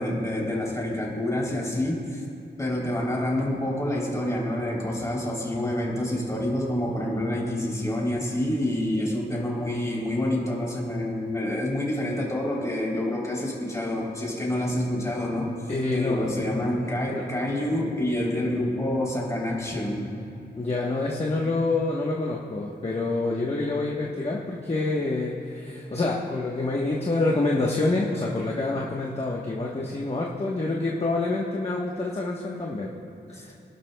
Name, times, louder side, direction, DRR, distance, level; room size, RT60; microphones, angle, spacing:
voice 1, 0.0-2.2 2.6-15.5 15.9-20.1 33.3-33.4, left 1 dB, 15° left, -4 dB, 3.3 m, -27 dB
voice 2, 15.7-17.2 20.6-32.9 33.4-33.5, left 2 dB, 35° left, -3 dB, 1.2 m, -27 dB
27.0 x 12.0 x 2.3 m, 2.8 s
wide cardioid pair, 120°, 18 cm